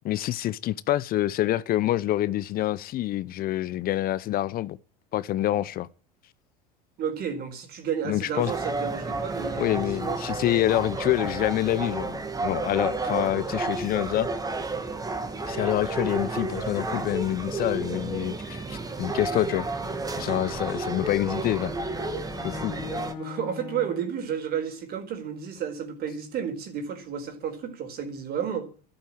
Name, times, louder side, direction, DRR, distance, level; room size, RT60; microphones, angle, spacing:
voice 1, 0.0-4.8 5.1-5.9 8.0-8.5 9.6-14.3 15.5-19.7 20.2-21.7 22.4-22.7, left 14 dB, 45° left, 0.9 m, -26 dB
voice 2, 7.0-10.2 22.7-22.8 23.1-28.7, right 8 dB, 45° right, 4.7 m, -32 dB
sound 1, 8.3-23.1, right 3 dB, 15° right, 2.4 m, -31 dB
Bowed string instrument, 19.4-24.1, left 9 dB, 75° left, 2.7 m, -41 dB
12.5 x 12.0 x 9.1 m
hypercardioid pair, 90°, 21 cm